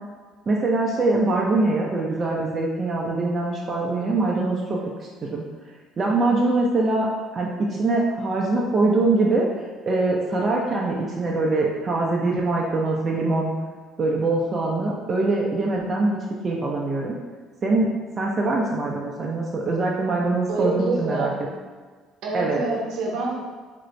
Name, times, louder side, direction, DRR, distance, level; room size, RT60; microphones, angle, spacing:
voice 1, 0.5-4.8 5.2-5.4 6.0-7.1 7.3-9.5 9.8-13.5 14.0-16.2 16.4-17.2 17.6-17.9 18.2-21.3 22.3-22.6, right 2 dB, 35° right, -2 dB, 0.5 m, -23 dB
voice 2, 20.5-21.4 22.2-23.4, right 2 dB, 70° right, -3 dB, 0.8 m, -26 dB
3.0 x 2.5 x 3.0 m, 1.5 s
supercardioid pair, 80°, 0 cm